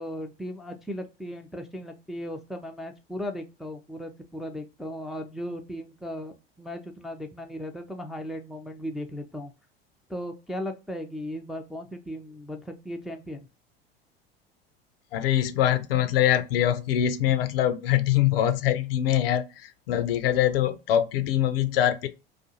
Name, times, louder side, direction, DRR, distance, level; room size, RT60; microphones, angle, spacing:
voice 1, 0.0-9.5 10.1-13.5, equal, ahead, 0.3 m, -37 dB
voice 2, 15.1-22.1, left 11 dB, 70° left, 0.5 m, -23 dB
2.4 x 2.4 x 2.6 m
figure-of-eight pair, 70°, 30 cm